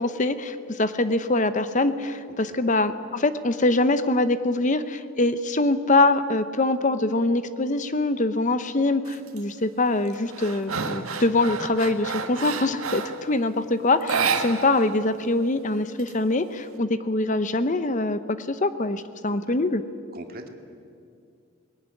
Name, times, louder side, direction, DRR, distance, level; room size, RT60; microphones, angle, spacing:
voice 1, 0.0-19.8, left 2 dB, 35° left, 12 dB, 0.7 m, -24 dB
voice 2, 2.3-2.8 19.3-19.6 20.1-20.5, right 1 dB, 45° right, 4 dB, 2.3 m, -42 dB
sound 1, 9.0-9.4 9.8-13.3 14.0-15.0 15.2-15.3 15.7-16.6, right 5 dB, 85° right, 1.7 m, -30 dB
21.0 x 19.0 x 9.9 m, 2.3 s
head